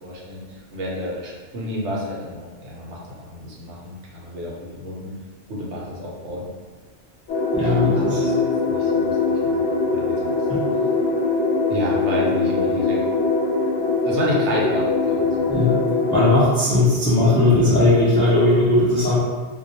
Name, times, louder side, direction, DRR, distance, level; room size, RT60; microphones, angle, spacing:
voice 1, 0.0-3.0 3.3-4.5 4.8-5.1 5.5-6.4 7.6-8.4 8.7-9.6 9.9-10.6 11.7-13.0 14.0-15.5, left 1 dB, 75° right, -4 dB, 0.9 m, -30 dB
sound 1, 7.3-16.3, left 3 dB, 90° left, 0.9 m, -22 dB
voice 2, 7.5-8.3 10.5-10.6 15.5-15.8 16.1-19.2, left 2 dB, 10° left, -9 dB, 0.3 m, -18 dB
2.1 x 2.1 x 2.7 m, 1.4 s
omnidirectional pair, 1.2 m